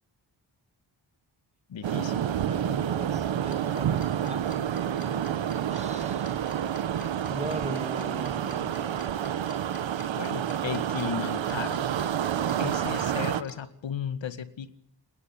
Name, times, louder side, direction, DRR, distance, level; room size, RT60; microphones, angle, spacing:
voice 1, 1.7-2.3 10.1-11.8 12.6-14.7, left 8 dB, 85° left, 10 dB, 2.1 m, -35 dB
sound 1, 1.8-13.4, right 9 dB, 85° right, 1.3 m, -29 dB
voice 2, 2.5-5.2 5.7-6.5 7.3-9.1, right 2 dB, 15° right, 7 dB, 2.4 m, -40 dB
Tick-tock, 3.5-13.5, left 4 dB, 50° left, 6.5 m, -50 dB
29.5 x 18.5 x 9.9 m, 0.75 s
wide cardioid pair, 155°, 44 cm